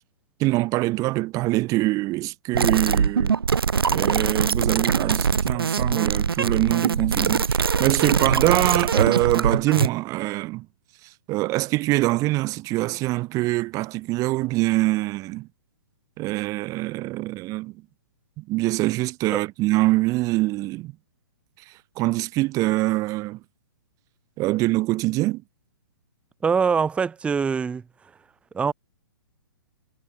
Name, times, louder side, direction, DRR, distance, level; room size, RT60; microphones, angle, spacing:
voice 1, 0.4-3.4 3.9-10.7 11.3-15.5 16.2-17.8 18.4-20.9 22.0-23.4 24.4-25.4, right 19 dB, 25° right, 1.4 m, -24 dB
sound 1, 2.5-9.9, right 6 dB, 75° right, 1.1 m, -22 dB
voice 2, 26.4-27.8 28.5-28.7, right 6 dB, 10° right, 0.8 m, -23 dB
figure-of-eight pair, 120°, 12 cm